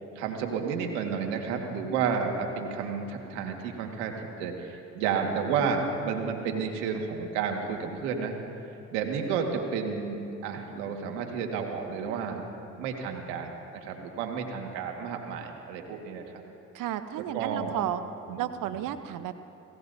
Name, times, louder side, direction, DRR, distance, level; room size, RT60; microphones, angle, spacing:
voice 1, 0.1-4.1 4.4-8.4 8.9-12.4 12.8-16.2 17.3-17.7 18.3-18.4 18.7-18.8, right 6 dB, 85° right, 2 dB, 1.8 m, -31 dB
voice 2, 16.7-18.0 18.4-19.3, right 12 dB, 65° right, 10 dB, 0.9 m, -32 dB
27.5 x 17.0 x 2.7 m, 2.8 s
hypercardioid pair, 60°, 35 cm